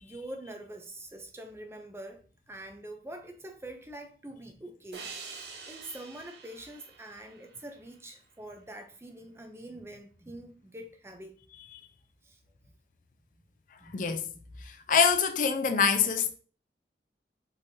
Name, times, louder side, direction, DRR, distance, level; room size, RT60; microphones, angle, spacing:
voice 1, 0.0-11.4 12.2-12.4 13.8-14.0, right 1 dB, 15° right, 0.5 m, -45 dB
sound 1, 4.9-8.2, right 4 dB, 75° right, 0.8 m, -46 dB
voice 2, 13.9-14.2 14.6-16.4, left 6 dB, 45° left, 0.4 m, -25 dB
5.3 x 3.3 x 2.7 m
head